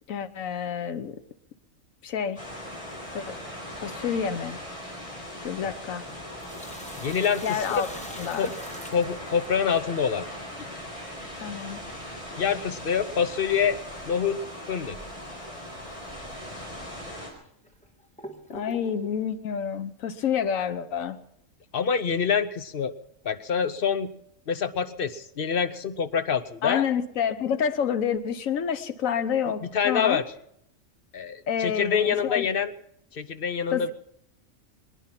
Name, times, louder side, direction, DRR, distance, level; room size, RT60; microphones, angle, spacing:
voice 1, 0.1-1.2 2.0-2.4 3.1-3.4 3.8-4.6 5.4-6.1 7.4-7.9 8.2-8.5 11.4-11.8 18.5-21.2 26.6-30.2 31.5-32.5 33.7-33.9, left 8 dB, 90° left, 1.3 m, -28 dB
sound 1, 2.4-17.3, equal, 25° left, 4.3 m, -39 dB
Sink (filling or washing), 6.4-9.8 12.2-12.3 14.2-14.4 14.9-15.0 15.8-15.9 16.6-16.7 17.3-19.2, equal, 5° left, 1.6 m, -43 dB
voice 2, 7.0-7.6 8.4-8.5 8.9-10.3 12.4-13.8 14.1-14.4 14.7-15.0 21.7-22.9 23.2-24.1 24.5-26.8 29.6-30.2 31.1-32.7 33.1-33.9, left 7 dB, 50° left, 0.8 m, -26 dB
23.0 x 10.5 x 5.8 m
omnidirectional pair, 1.4 m